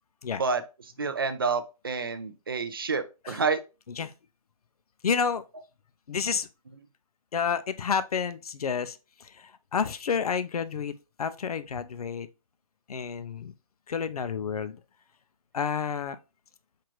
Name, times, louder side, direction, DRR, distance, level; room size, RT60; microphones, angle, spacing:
voice 1, 1.0-3.6, right 4 dB, 40° right, 0.4 m, -28 dB
voice 2, 5.0-5.4 6.1-6.5 7.3-12.3 12.9-13.5 13.9-14.8 15.5-16.2, left 6 dB, 90° left, 0.5 m, -30 dB
4.6 x 2.5 x 3.0 m
hypercardioid pair, 180°, 19 cm